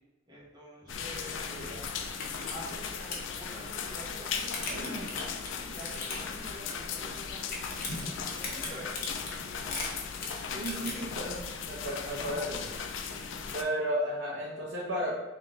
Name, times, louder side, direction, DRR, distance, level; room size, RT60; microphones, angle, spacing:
voice 1, 0.3-1.6 2.4-5.3 5.7-9.6 10.1-11.1 12.0-12.5 13.2-13.5, equal, 25° right, -6 dB, 1.1 m, -47 dB
sound 1, 0.8-0.9 1.2-3.3 3.6-3.7 3.8-4.0 4.6-9.7 10.1-10.4 10.9-11.2 11.6-11.9 12.4-12.5 13.2-13.3, equal, 55° right, 1.3 m, -47 dB
sound 2, 0.9-13.6, left 6 dB, 80° left, 0.4 m, -38 dB
sound 3, 1.6-1.7 2.0-2.5 2.8-3.3 3.9-6.4 6.7-7.1 7.4-10.9, left 3 dB, 50° left, 0.8 m, -38 dB
voice 2, 10.5-12.6 13.5-15.1, equal, 80° right, -4 dB, 1.1 m, -33 dB
3.3 x 2.9 x 4.0 m, 1.1 s
head